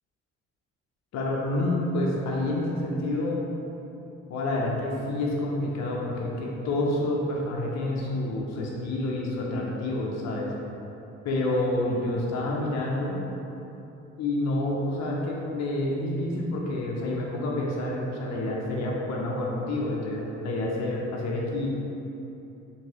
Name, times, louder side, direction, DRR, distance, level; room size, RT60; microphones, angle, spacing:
voice 1, 1.1-3.4 4.3-10.5 11.2-13.2 14.2-21.7, left 1 dB, 60° left, -3 dB, 0.5 m, -28 dB
2.9 x 2.6 x 2.8 m, 2.9 s
cardioid pair, 90°, 30 cm